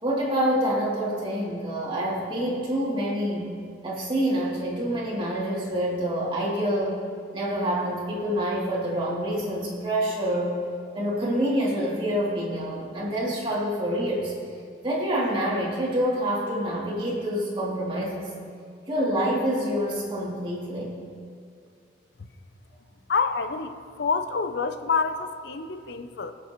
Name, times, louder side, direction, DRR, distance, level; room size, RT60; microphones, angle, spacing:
voice 1, 0.0-3.5 3.8-7.0 7.3-10.6 10.9-14.3 14.8-18.2 18.9-21.0, equal, 30° right, -6 dB, 2.7 m, -27 dB
voice 2, 23.1-26.3, left 4 dB, 65° left, 9 dB, 0.6 m, -27 dB
22.5 x 7.4 x 3.0 m, 2.2 s
head